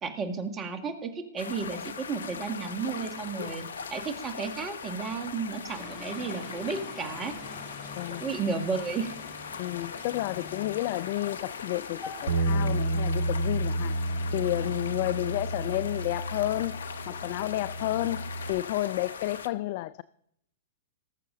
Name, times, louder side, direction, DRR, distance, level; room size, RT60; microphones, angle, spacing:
voice 1, 0.0-7.4 8.2-9.1, right 5 dB, 25° right, 1.7 m, -33 dB
sound 1, 1.4-19.5, left 6 dB, 75° left, 0.8 m, -40 dB
sound 2, 5.7-16.1, left 3 dB, 25° left, 3.8 m, -47 dB
voice 2, 9.6-20.0, left 17 dB, 50° left, 0.3 m, -31 dB
Bass guitar, 12.3-18.5, right 1 dB, 65° right, 2.6 m, -31 dB
19.5 x 7.0 x 3.8 m
hypercardioid pair, 110°, 0 cm